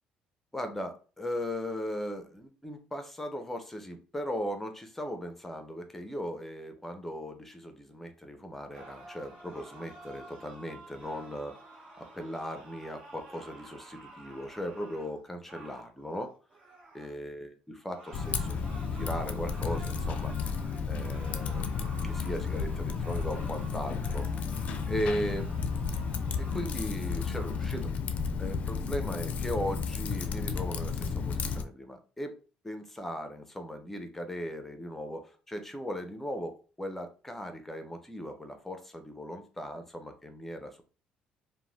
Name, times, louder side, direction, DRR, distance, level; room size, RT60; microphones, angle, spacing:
voice 1, 0.5-16.3 16.9-20.3 20.8-24.3 24.9-25.5 26.4-27.9 28.4-32.4 32.6-40.8, equal, 10° left, 6 dB, 0.6 m, -38 dB
sound 1, 8.7-17.2 17.9-27.9, right 2 dB, 50° right, 1.1 m, -51 dB
Typing, 18.1-31.6, left 5 dB, 55° left, 0.4 m, -32 dB
3.0 x 2.1 x 2.7 m, 0.36 s
cardioid pair, 90°, 3 cm